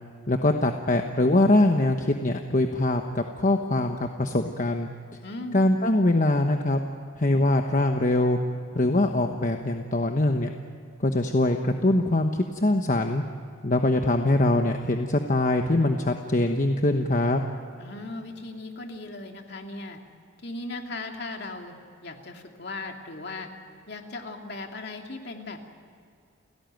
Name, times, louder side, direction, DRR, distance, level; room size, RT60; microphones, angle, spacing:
voice 1, 0.3-4.9 5.5-6.8 7.2-8.4 8.7-10.5 11.0-13.2 13.6-17.4, left 2 dB, 40° left, 5 dB, 1.1 m, -23 dB
voice 2, 5.2-5.7 17.8-20.0 20.4-21.8 22.0-23.5 23.9-25.6, left 2 dB, 55° left, 3 dB, 2.6 m, -37 dB
30.0 x 17.0 x 9.3 m, 2.5 s
head